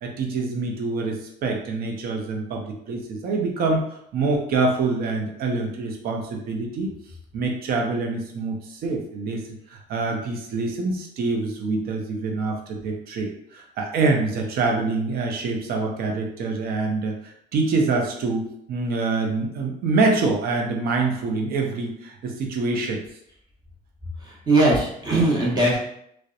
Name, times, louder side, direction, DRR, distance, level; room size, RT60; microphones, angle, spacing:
voice 1, 0.0-6.9 7.3-9.4 9.7-23.0, right 3 dB, 65° right, 1 dB, 0.6 m, -25 dB
voice 2, 24.2-25.8, right 2 dB, 25° right, -5 dB, 0.9 m, -20 dB
2.7 x 2.1 x 2.4 m, 0.71 s
cardioid pair, 110°, 17 cm